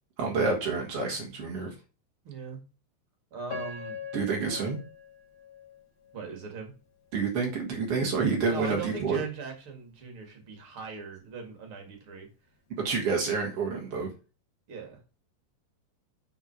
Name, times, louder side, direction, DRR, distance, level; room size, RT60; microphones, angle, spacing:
voice 1, 0.2-1.7 4.1-4.8 7.1-9.2 12.8-14.1, right 4 dB, 80° right, 1 dB, 1.3 m, -28 dB
voice 2, 2.2-2.6 3.3-4.0 6.1-6.7 8.5-12.3 14.7-15.0, right 4 dB, 45° right, 3 dB, 1.9 m, -39 dB
Piano, 3.5-6.5 7.1-7.2 7.8-8.1, left 6 dB, 75° left, 1.4 m, -43 dB
7.9 x 5.5 x 5.9 m, 0.34 s
omnidirectional pair, 5.3 m